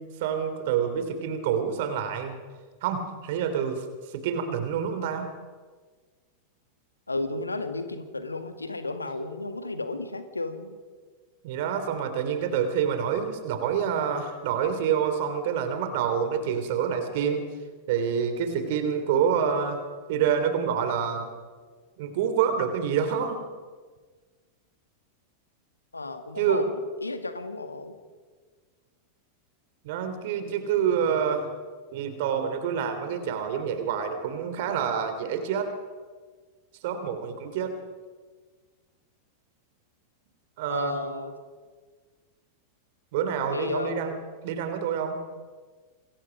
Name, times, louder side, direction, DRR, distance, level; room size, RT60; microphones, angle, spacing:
voice 1, 0.0-2.4 2.8-3.8 4.1-5.3 11.4-17.4 17.9-19.8 20.1-21.3 22.0-23.4 26.4-26.6 29.8-31.5 31.9-35.7 36.8-37.7 40.6-41.0 43.1-44.2 44.4-45.2, right 7 dB, 50° right, 8 dB, 3.2 m, -27 dB
voice 2, 7.1-10.8 25.9-26.7 27.0-28.0 40.7-41.3 43.5-44.0, left 2 dB, 80° left, 9 dB, 2.0 m, -33 dB
27.5 x 22.0 x 5.2 m, 1.5 s
figure-of-eight pair, 90°, 0 cm